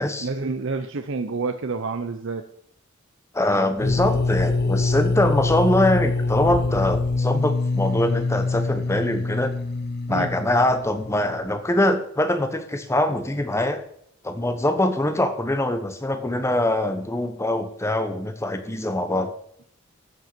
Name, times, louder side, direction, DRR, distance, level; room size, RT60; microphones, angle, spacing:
voice 1, 0.2-2.4 10.1-10.3, right 4 dB, 65° right, 7 dB, 0.7 m, -28 dB
voice 2, 3.3-9.5 10.1-13.8 14.2-19.3, left 1 dB, 15° left, 7 dB, 1.1 m, -23 dB
sound 1, 3.8-11.5, left 3 dB, 50° left, 0.8 m, -24 dB
14.5 x 5.5 x 6.0 m, 0.68 s
head